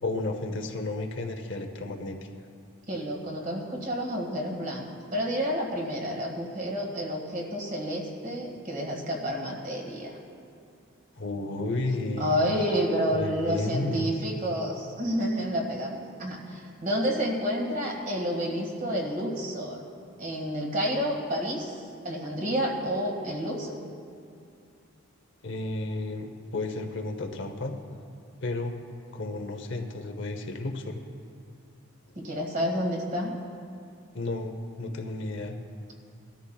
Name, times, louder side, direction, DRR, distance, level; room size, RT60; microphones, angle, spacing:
voice 1, 0.0-2.2 11.2-12.5 13.1-14.2 25.4-27.7 28.4-28.7 29.1-31.0 34.1-35.6, left 2 dB, 55° left, 5 dB, 0.8 m, -32 dB
voice 2, 2.9-4.8 5.1-10.1 12.2-19.8 20.2-21.7 22.0-23.7 32.2-33.3, equal, 40° right, -1 dB, 1.8 m, -29 dB
20.0 x 13.0 x 2.3 m, 2.5 s
head